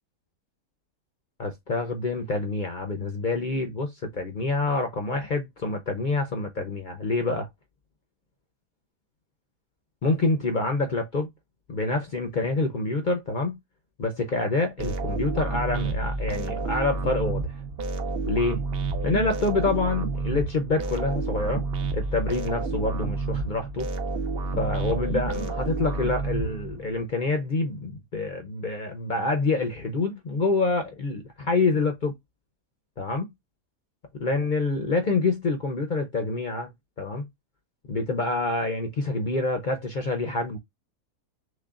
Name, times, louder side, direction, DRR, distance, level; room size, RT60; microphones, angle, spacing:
voice 1, 1.4-7.5 10.0-11.3 11.7-13.6 14.0-17.5 18.3-18.6 19.0-21.6 21.9-23.9 24.6-32.1 33.0-33.3 34.1-36.7 37.0-37.3 37.9-40.6, left 3 dB, 50° left, 0.5 m, -27 dB
sound 1, 14.8-27.0, right 3 dB, 50° right, 0.7 m, -29 dB
6.3 x 2.3 x 2.4 m
omnidirectional pair, 1.8 m